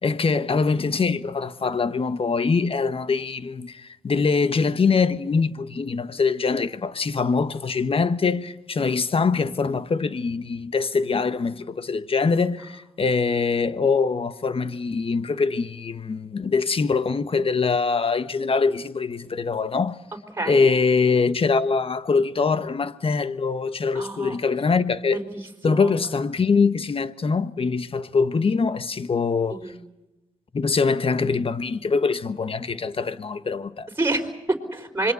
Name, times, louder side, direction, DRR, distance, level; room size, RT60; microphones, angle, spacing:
voice 1, 0.0-20.0 20.5-25.2 25.6-29.6 30.5-33.9, left 4 dB, 45° left, 1.2 m, -23 dB
voice 2, 20.4-20.7 23.9-24.4 25.1-25.4 25.7-25.9 29.5-29.8 34.0-35.1, right 2 dB, 15° right, 4.4 m, -28 dB
25.5 x 22.5 x 6.9 m
cardioid pair, 55°, 13 cm